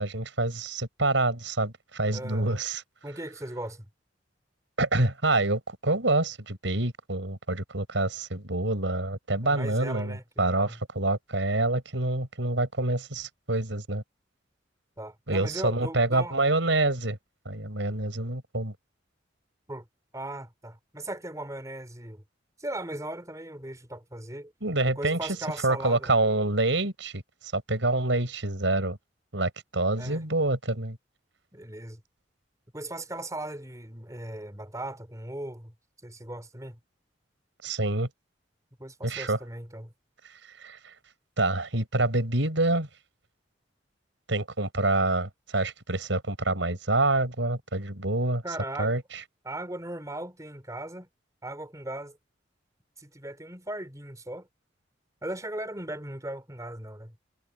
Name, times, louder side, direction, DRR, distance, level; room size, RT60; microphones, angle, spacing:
voice 1, 0.0-2.8 4.8-14.0 15.3-17.2 17.4-18.7 24.6-25.2 25.6-27.2 27.5-29.0 29.3-31.0 37.6-38.1 39.0-39.4 40.6-40.8 41.4-42.9 44.3-48.4 48.8-49.0, right 2 dB, 85° right, 4.9 m, -27 dB
voice 2, 2.1-2.6 3.0-3.9 9.4-10.8 15.0-16.4 19.7-19.8 20.1-22.2 22.6-24.5 25.0-26.1 30.0-30.2 31.5-32.0 32.7-35.7 36.0-36.8 38.8-39.9 48.4-49.0 49.4-51.1 51.4-52.2 53.0-54.5 55.2-57.1, right 1 dB, 20° right, 3.8 m, -38 dB
head